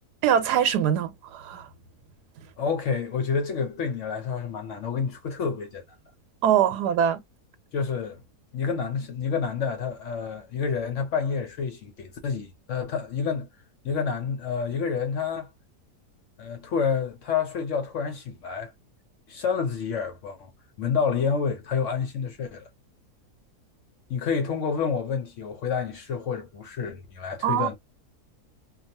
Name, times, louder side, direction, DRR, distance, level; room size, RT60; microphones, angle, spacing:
voice 1, 0.2-1.7 6.4-7.2 27.4-27.7, right 9 dB, 85° right, 1.2 m, -23 dB
voice 2, 2.6-5.8 7.7-8.2 8.5-13.5 13.8-15.5 16.4-18.7 19.3-20.5 20.8-22.7 24.1-27.7, left 6 dB, 65° left, 0.8 m, -28 dB
2.8 x 2.3 x 2.7 m
omnidirectional pair, 1.7 m